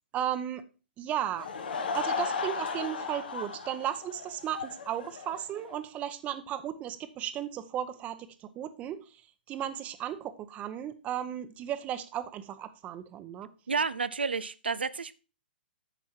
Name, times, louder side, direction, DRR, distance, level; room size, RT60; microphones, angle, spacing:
voice 1, 0.1-0.6 1.0-1.5 1.9-9.0 9.5-13.5, right 10 dB, 25° right, 0.9 m, -35 dB
Laughter / Crowd, 1.2-5.8, left 5 dB, 65° left, 1.5 m, -35 dB
voice 2, 13.7-15.2, right 5 dB, 85° right, 0.6 m, -31 dB
9.2 x 6.1 x 4.5 m
figure-of-eight pair, 120°, 6 cm